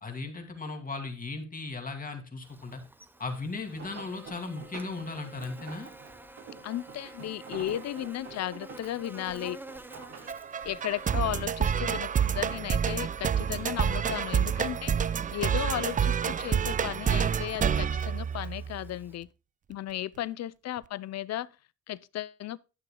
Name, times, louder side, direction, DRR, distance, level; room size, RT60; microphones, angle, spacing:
voice 1, 0.0-2.8 3.2-5.9, left 3 dB, 30° left, 2.6 m, -37 dB
Buzz, 2.4-19.2, right 2 dB, 5° right, 0.9 m, -51 dB
sound 1, 3.5-13.1 13.4-14.4 14.7-16.1 16.8-17.1 17.5-17.6, right 5 dB, 60° right, 2.7 m, -49 dB
voice 2, 6.6-9.6 10.7-19.3 19.7-21.5 21.9-22.6, left 13 dB, 60° left, 0.5 m, -35 dB
sound 2, 10.3-18.9, right 7 dB, 25° right, 0.4 m, -28 dB
11.0 x 9.0 x 2.2 m
cardioid pair, 90°, 30 cm